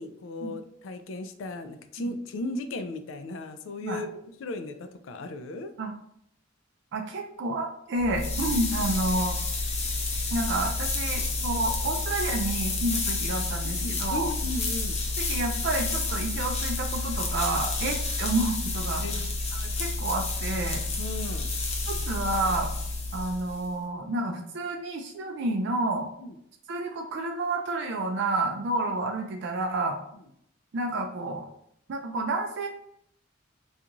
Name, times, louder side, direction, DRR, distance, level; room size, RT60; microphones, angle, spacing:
voice 1, 0.0-4.1 4.4-5.7 13.6-15.0 19.0-19.3 21.0-21.5 26.2-26.4 30.1-30.2, left 2 dB, 90° left, 8 dB, 0.3 m, -36 dB
voice 2, 6.9-9.4 10.3-14.3 15.2-19.0 19.6-20.8 21.9-22.7 23.1-26.1 26.7-30.0 30.7-31.5 31.9-32.7, right 2 dB, 65° right, 2 dB, 0.4 m, -30 dB
sound 1, 8.0-23.7, left 3 dB, 35° left, 0.5 m, -30 dB
2.5 x 2.4 x 2.9 m, 0.71 s
head